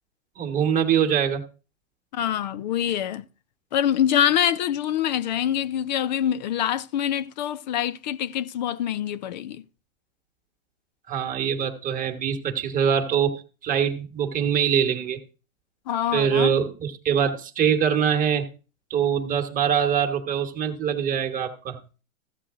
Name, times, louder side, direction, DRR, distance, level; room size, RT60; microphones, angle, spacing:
voice 1, 0.4-1.4 11.1-15.2 16.1-18.5 18.9-21.8, right 8 dB, 20° right, 1.4 m, -23 dB
voice 2, 2.1-3.2 3.7-9.6 15.9-16.5, left 10 dB, 35° left, 0.4 m, -25 dB
14.5 x 7.6 x 3.7 m
hypercardioid pair, 130°, 42 cm